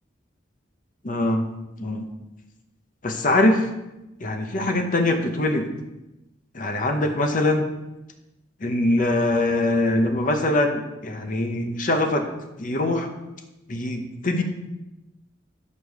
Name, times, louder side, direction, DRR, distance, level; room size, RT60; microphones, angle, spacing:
voice 1, 1.0-1.5 1.8-2.1 3.0-3.6 4.2-5.7 6.5-7.6 8.6-12.2 12.6-13.1 13.7-14.4, left 1 dB, 45° left, 5 dB, 0.8 m, -22 dB
5.3 x 4.8 x 6.4 m, 0.96 s
head